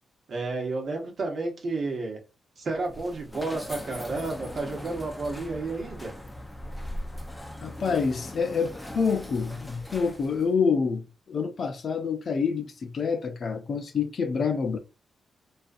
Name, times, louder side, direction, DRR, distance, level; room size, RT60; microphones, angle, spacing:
voice 1, 0.3-2.2 2.6-6.1, right 3 dB, 60° right, 1.0 m, -31 dB
sound 1, 2.7-10.5, left 1 dB, 10° left, 0.7 m, -40 dB
voice 2, 7.6-14.8, left 5 dB, 60° left, 0.5 m, -27 dB
2.5 x 2.4 x 2.4 m
supercardioid pair, 50°, 0 cm